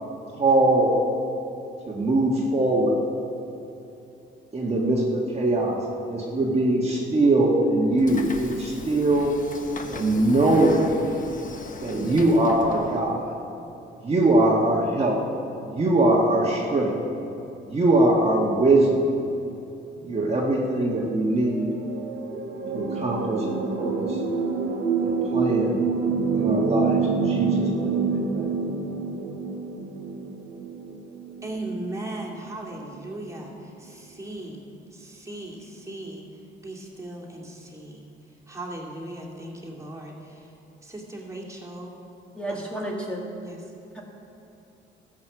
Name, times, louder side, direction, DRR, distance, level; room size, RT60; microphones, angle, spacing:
voice 1, 0.4-0.9 1.9-2.9 4.5-9.3 9.9-10.9 11.8-13.3 14.0-15.2 15.6-16.9 17.7-18.9 20.0-21.7 22.7-23.5 23.8-24.2 25.0-25.8 26.3-28.5, right 2 dB, 30° right, -3 dB, 1.5 m, -22 dB
Train / Sliding door, 8.0-13.0, left 4 dB, 40° left, 1.1 m, -39 dB
sound 1, 21.3-32.1 33.0-33.1, right 5 dB, 90° right, 1.3 m, -27 dB
voice 2, 31.4-34.6 34.9-36.2 36.6-38.0 38.5-40.5 40.8-42.0 42.5-42.6 43.4-43.6, right 1 dB, 15° right, -2 dB, 2.4 m, -37 dB
voice 3, 42.4-43.3 43.9-44.0, right 1 dB, 5° left, -2 dB, 1.8 m, -31 dB
14.0 x 7.5 x 6.1 m, 2.8 s
cardioid pair, 90°, 20 cm